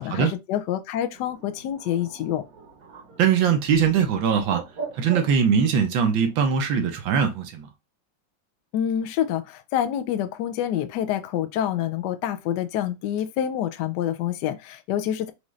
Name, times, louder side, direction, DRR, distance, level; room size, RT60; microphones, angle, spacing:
voice 1, 0.0-2.4 8.7-15.3, left 10 dB, 75° left, 1.0 m, -27 dB
Bird, 1.1-6.6, right 5 dB, 55° right, 1.3 m, -41 dB
voice 2, 3.2-4.6 5.0-7.7, right 7 dB, 75° right, 1.5 m, -21 dB
4.9 x 2.6 x 3.1 m
omnidirectional pair, 2.1 m